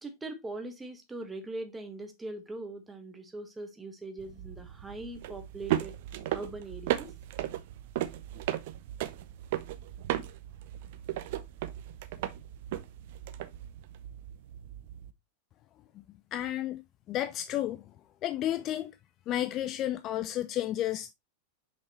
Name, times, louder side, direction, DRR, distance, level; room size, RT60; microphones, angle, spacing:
voice 1, 0.0-6.0 6.3-7.1, right 2 dB, 10° right, 1.5 m, -41 dB
sound 1, 4.2-15.1, right 13 dB, 50° right, 0.6 m, -36 dB
voice 2, 16.3-16.8 17.1-17.8 18.2-18.9 19.3-21.1, left 12 dB, 35° left, 0.4 m, -32 dB
6.0 x 5.3 x 3.0 m
figure-of-eight pair, 90°, 0 cm